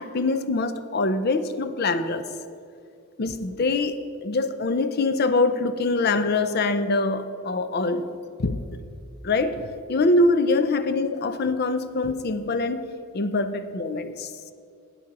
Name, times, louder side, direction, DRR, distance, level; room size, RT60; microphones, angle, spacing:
voice 1, 0.0-2.3 3.2-8.1 8.4-8.6 9.2-12.9 13.1-14.3, left 3 dB, 45° left, 10 dB, 0.5 m, -24 dB
8.9 x 7.4 x 5.9 m, 2.4 s
head